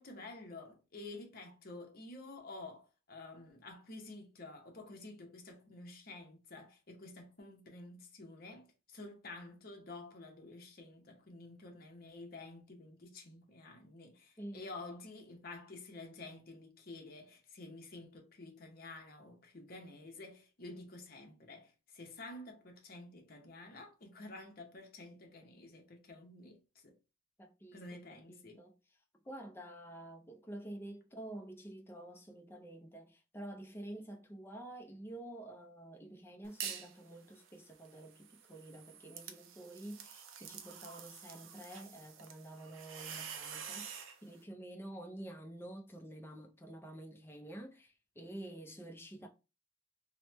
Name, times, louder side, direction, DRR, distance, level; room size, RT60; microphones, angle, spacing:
voice 1, 0.0-27.0 27.7-28.6, left 2 dB, 50° left, 0.7 m, -50 dB
voice 2, 14.4-14.8 27.4-28.0 28.3-28.7 29.2-49.3, right 1 dB, 10° left, 0.4 m, -49 dB
sound 1, 36.4-37.0 37.4-44.2, right 7 dB, 85° right, 0.5 m, -47 dB
3.0 x 2.1 x 2.9 m
head